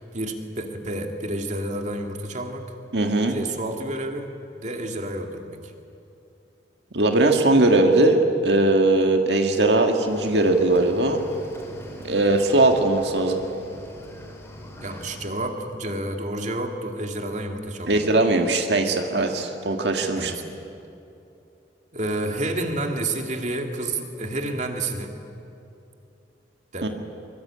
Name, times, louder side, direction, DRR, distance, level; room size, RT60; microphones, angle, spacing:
voice 1, 0.1-2.6 3.3-4.3 4.6-5.6 14.8-18.0 20.2-20.4 21.9-25.1 26.7-26.9, right 1 dB, 40° right, 3 dB, 2.5 m, -29 dB
voice 2, 2.9-3.4 6.9-11.2 12.0-13.4 17.9-20.3 26.8-26.9, right 2 dB, 70° right, 4 dB, 1.8 m, -20 dB
Cricket / Waves surf, 10.1-15.3, equal, 15° left, 4.8 m, -42 dB
23.5 x 23.5 x 8.8 m, 2.8 s
head